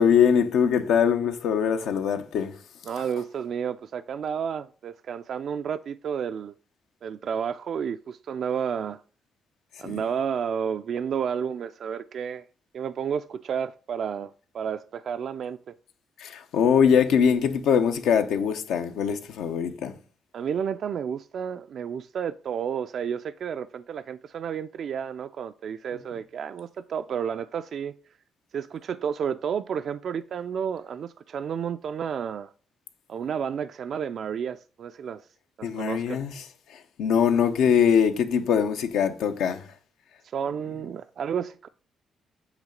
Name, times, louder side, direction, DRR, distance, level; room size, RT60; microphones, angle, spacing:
voice 1, 0.0-2.6 9.8-10.0 16.2-19.9 35.6-36.4 36.7-39.7, left 7 dB, 80° left, 0.8 m, -22 dB
voice 2, 2.9-6.5 7.0-9.0 9.8-12.4 12.7-15.6 20.3-27.9 28.5-32.5 33.1-35.2 35.6-36.2 40.3-41.7, right 7 dB, 60° right, 0.3 m, -31 dB
8.1 x 3.2 x 5.1 m
cardioid pair, 90°, 0 cm